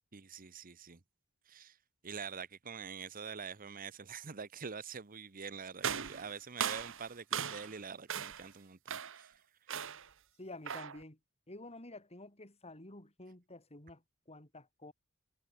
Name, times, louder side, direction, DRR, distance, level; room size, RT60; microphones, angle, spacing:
voice 1, 0.1-1.0 1.5-1.8 2.0-9.4, right 6 dB, 40° right, 1.0 m, -45 dB
sound 1, 5.8-7.8 8.1-8.5 8.9-9.3 9.7-10.1 10.6-11.0, right 8 dB, 65° right, 1.5 m, -38 dB
voice 2, 10.4-11.2 11.5-14.9, left 2 dB, 30° left, 4.1 m, -50 dB
head